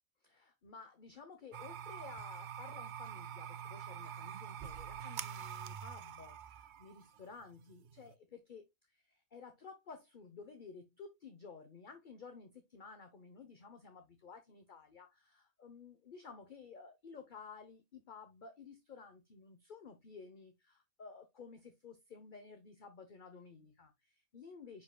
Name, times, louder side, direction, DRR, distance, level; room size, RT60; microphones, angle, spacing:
voice 1, 0.2-24.8, left 5 dB, 40° left, 1.0 m, -54 dB
sound 1, 1.5-8.1, right 8 dB, 80° right, 0.4 m, -46 dB
9.5 x 4.8 x 2.3 m
omnidirectional pair, 1.4 m